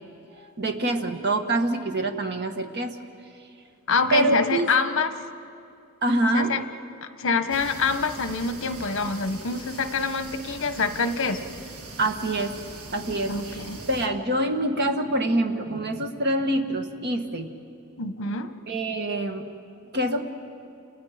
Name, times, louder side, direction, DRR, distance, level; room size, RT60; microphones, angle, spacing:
voice 1, 0.6-2.9 4.1-4.7 6.0-6.6 12.0-12.6 12.9-17.5 18.7-19.4 19.9-20.2, right 1 dB, 50° right, 5 dB, 1.7 m, -25 dB
voice 2, 3.9-5.1 6.3-6.6 7.2-11.4 13.3-13.9 18.0-18.5, left 4 dB, 60° left, 9 dB, 1.2 m, -26 dB
sound 1, 7.5-14.1, right 2 dB, 80° right, 1.8 m, -41 dB
30.0 x 29.5 x 5.1 m, 2.5 s
head